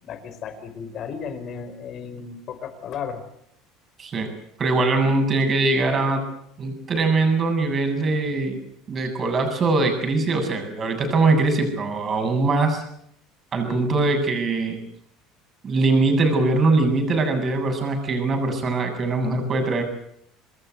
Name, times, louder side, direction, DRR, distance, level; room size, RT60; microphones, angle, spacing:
voice 1, 0.0-3.2 13.6-13.9, left 6 dB, 45° left, 10 dB, 4.6 m, -34 dB
voice 2, 4.0-6.2 6.6-8.6 8.9-12.8 13.5-14.8 15.6-19.8, right 3 dB, 30° right, 5 dB, 7.6 m, -22 dB
26.5 x 20.5 x 8.1 m, 0.71 s
cardioid pair, 135°, 0 cm